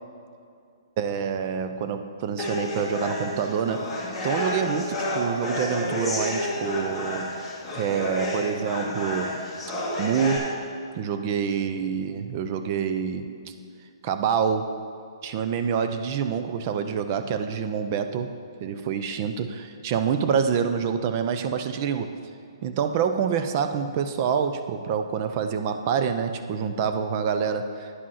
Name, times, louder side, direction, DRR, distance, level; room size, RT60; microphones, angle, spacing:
voice 1, 1.0-7.3 7.7-9.4 10.0-10.5 11.0-13.5 14.0-14.7 15.2-22.1 22.6-27.9, right 7 dB, 30° right, 8 dB, 0.4 m, -27 dB
sound 1, 2.4-10.4, left 1 dB, 5° left, 1.5 m, -30 dB
9.7 x 5.1 x 5.6 m, 2.4 s
hypercardioid pair, 165°, 3 cm